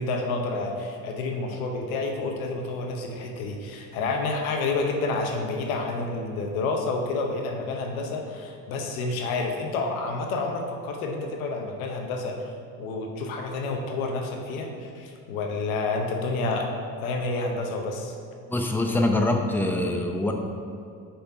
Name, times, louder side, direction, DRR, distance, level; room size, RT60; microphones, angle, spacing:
voice 1, 0.0-12.5 12.8-16.7 17.0-18.1, left 3 dB, 90° left, 2 dB, 0.9 m, -29 dB
voice 2, 18.5-20.3, left 1 dB, 5° left, 3 dB, 0.7 m, -24 dB
5.6 x 4.3 x 5.6 m, 2.5 s
hypercardioid pair, 70°, 41 cm